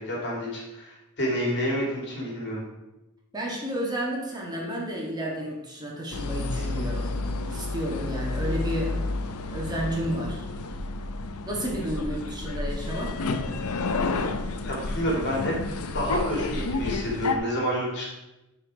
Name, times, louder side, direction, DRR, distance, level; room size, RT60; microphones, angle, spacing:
voice 1, 0.0-2.6 14.6-15.5 15.9-18.0, equal, 55° left, -2 dB, 2.7 m, -29 dB
voice 2, 3.3-7.1 7.5-9.0 9.5-10.4 11.4-13.1, equal, 20° right, -2 dB, 1.7 m, -31 dB
sound 1, 6.1-17.4, left 3 dB, 85° left, 0.7 m, -30 dB
10.5 x 4.5 x 4.8 m, 0.99 s
head